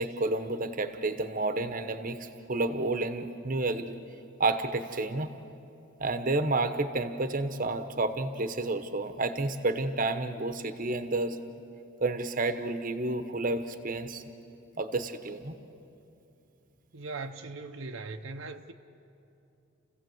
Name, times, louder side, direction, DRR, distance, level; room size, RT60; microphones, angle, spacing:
voice 1, 0.0-4.0 4.4-5.3 6.0-11.4 12.0-14.2 14.8-15.5, right 2 dB, 40° right, 1.0 m, -30 dB
voice 2, 16.9-18.7, right 3 dB, 70° right, 0.8 m, -39 dB
29.5 x 16.0 x 7.9 m
head